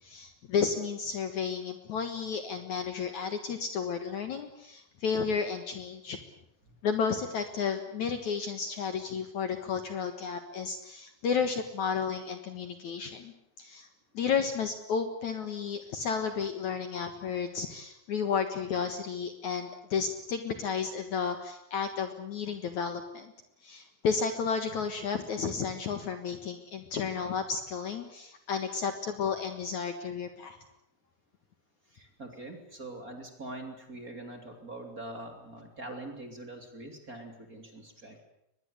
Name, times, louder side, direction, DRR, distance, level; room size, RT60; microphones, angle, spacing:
voice 1, 0.0-6.2 6.8-13.9 14.1-23.3 23.6-30.6, left 6 dB, 60° left, 7 dB, 2.5 m, -32 dB
voice 2, 31.9-38.2, right 2 dB, 25° right, 4 dB, 3.3 m, -43 dB
23.0 x 21.0 x 8.4 m, 0.80 s
omnidirectional pair, 4.5 m